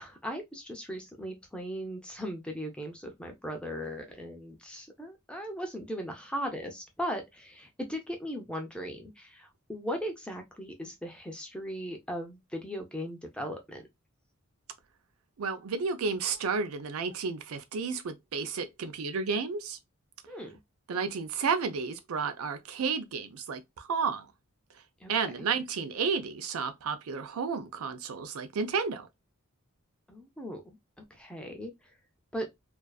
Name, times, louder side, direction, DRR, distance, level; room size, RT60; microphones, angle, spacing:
voice 1, 0.0-13.8 20.3-20.5 25.0-25.5 30.1-30.8 31.1-31.7 32.3-32.5, equal, 5° left, 0.4 m, -38 dB
voice 2, 15.4-19.8 20.9-24.3 25.1-29.1, right 5 dB, 75° right, 0.5 m, -32 dB
2.4 x 2.4 x 2.2 m
head